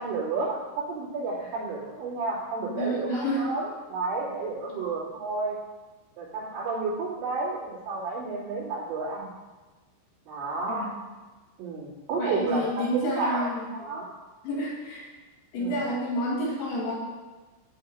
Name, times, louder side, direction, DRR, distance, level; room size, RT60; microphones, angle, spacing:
voice 1, 0.0-5.6 6.2-9.3 10.3-10.9 11.6-13.5 13.7-14.1 15.5-15.8, right 3 dB, 85° right, -8 dB, 5.4 m, -31 dB
voice 2, 2.7-3.5 10.7-10.9 12.2-13.6 14.4-15.1 15.5-17.0, equal, 60° left, -4 dB, 3.5 m, -29 dB
11.0 x 3.8 x 7.7 m, 1.2 s
omnidirectional pair, 5.6 m